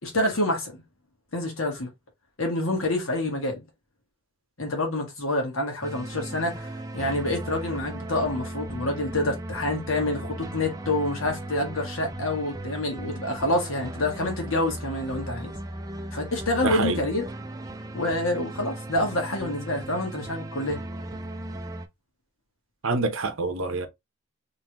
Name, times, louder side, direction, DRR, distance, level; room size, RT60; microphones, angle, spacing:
voice 1, 0.0-0.8 1.3-1.9 2.4-3.6 4.6-15.5 16.1-17.2 17.9-20.8, left 1 dB, 75° left, 1.7 m, -27 dB
sound 1, 5.8-21.9, right 1 dB, 15° right, 0.4 m, -37 dB
voice 2, 16.6-17.0 22.8-23.9, right 3 dB, 70° right, 0.8 m, -26 dB
3.8 x 3.2 x 3.0 m
head